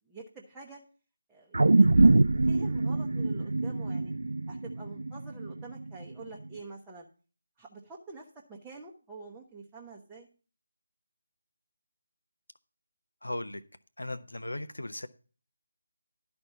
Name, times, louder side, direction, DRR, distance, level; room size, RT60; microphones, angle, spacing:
voice 1, 0.1-0.8 1.3-2.1 2.4-4.1 4.5-7.1 7.6-10.3, right 3 dB, 10° right, -4 dB, 0.9 m, -47 dB
sound 1, 1.5-6.0 6.5-6.6, right 2 dB, 60° right, 0.5 m, -24 dB
voice 2, 13.2-13.6 14.0-15.1, left 1 dB, 70° left, 12 dB, 0.9 m, -37 dB
12.0 x 4.4 x 6.9 m, 0.38 s
figure-of-eight pair, 155°, 0 cm